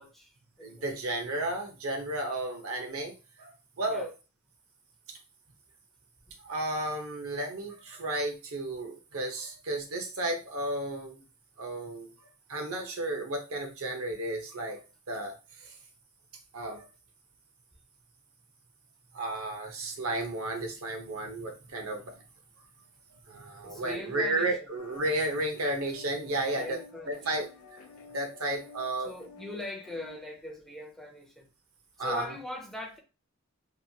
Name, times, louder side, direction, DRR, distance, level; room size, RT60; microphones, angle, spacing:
voice 1, 0.0-0.9 3.9-4.1 6.3-6.4 23.6-24.6 26.5-27.3 29.0-31.5 32.0-33.0, left 1 dB, ahead, 0.4 m, -41 dB
voice 2, 0.6-3.5 3.8-4.1 5.1-5.2 6.4-11.2 11.6-12.1 12.5-14.8 15.1-15.7 16.5-16.9 19.1-22.1 23.3-26.8 27.1-27.5 28.1-29.1 32.0-32.3, right 1 dB, 75° right, 0.7 m, -33 dB
sound 1, 24.7-30.2, left 4 dB, 85° left, 0.4 m, -51 dB
3.0 x 2.2 x 2.7 m
head